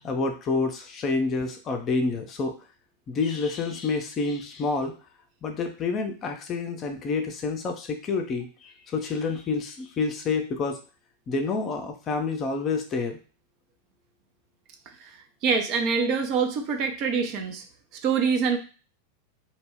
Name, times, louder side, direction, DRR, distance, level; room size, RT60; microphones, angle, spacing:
voice 1, 0.0-2.5 3.1-4.9 5.4-10.8 11.3-13.2, left 4 dB, 30° left, 4 dB, 0.5 m, -28 dB
voice 2, 15.4-17.6 18.0-18.6, right 5 dB, 40° right, 5 dB, 0.5 m, -25 dB
2.2 x 2.1 x 3.4 m, 0.36 s
figure-of-eight pair, 90°, 0 cm